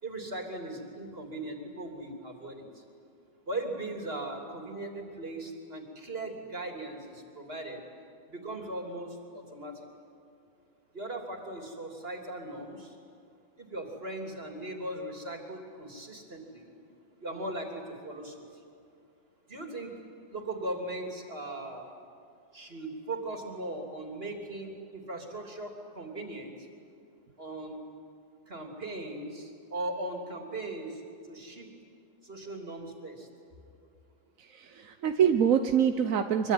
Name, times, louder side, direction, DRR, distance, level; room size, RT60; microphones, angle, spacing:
voice 1, 0.0-2.8 3.5-7.8 8.3-9.9 10.9-13.0 13.6-16.7 17.2-18.6 19.5-19.9 20.3-21.9 22.5-26.7 27.4-27.8 28.5-31.7 32.2-33.3, right 2 dB, 45° right, 2 dB, 3.6 m, -39 dB
voice 2, 34.4-36.5, right 8 dB, 80° right, 6 dB, 1.3 m, -25 dB
24.5 x 24.5 x 9.5 m, 2.5 s
omnidirectional pair, 1.4 m